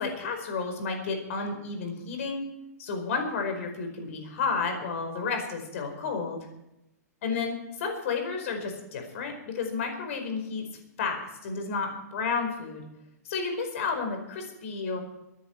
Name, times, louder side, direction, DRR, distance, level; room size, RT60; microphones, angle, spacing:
voice 1, 0.0-2.4 2.8-6.4 7.2-10.6 11.0-12.8 13.2-15.0, left 4 dB, 55° left, 5 dB, 4.8 m, -31 dB
23.0 x 11.0 x 4.7 m, 0.88 s
hypercardioid pair, 155°, 9 cm